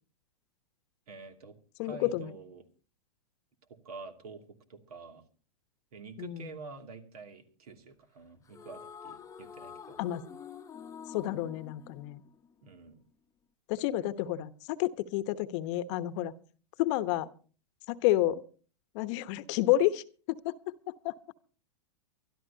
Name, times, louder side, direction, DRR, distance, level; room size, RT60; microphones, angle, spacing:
voice 1, 1.1-2.6 3.7-5.2 5.9-10.0 12.6-13.0, right 4 dB, 70° right, 5 dB, 2.6 m, -48 dB
voice 2, 1.8-2.4 6.2-6.6 10.0-10.2 11.1-12.2 13.7-16.3 16.8-17.3 17.9-18.4 18.9-21.1, left 14 dB, 45° left, 12 dB, 1.0 m, -30 dB
sound 1, 8.5-12.9, left 7 dB, 15° left, 1.0 m, -48 dB
24.0 x 12.5 x 2.8 m, 0.39 s
hypercardioid pair, 105°, 20 cm